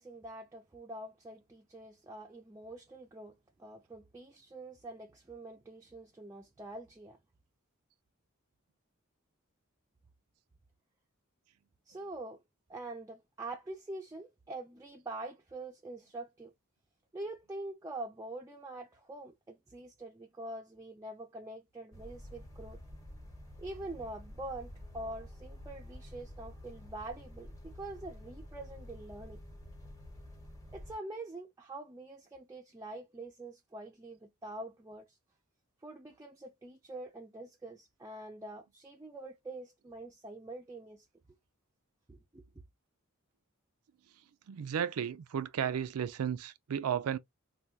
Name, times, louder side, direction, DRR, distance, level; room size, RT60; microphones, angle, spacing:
voice 1, 0.0-7.2 11.9-12.4 12.7-16.5 17.1-22.8 23.6-29.4 30.7-35.2 35.8-41.1 42.1-42.4, right 2 dB, 15° right, 0.4 m, -45 dB
sound 1, 21.9-30.9, left 1 dB, 15° left, 0.8 m, -49 dB
voice 2, 44.5-47.2, right 8 dB, 90° right, 0.4 m, -34 dB
3.4 x 2.2 x 2.7 m
head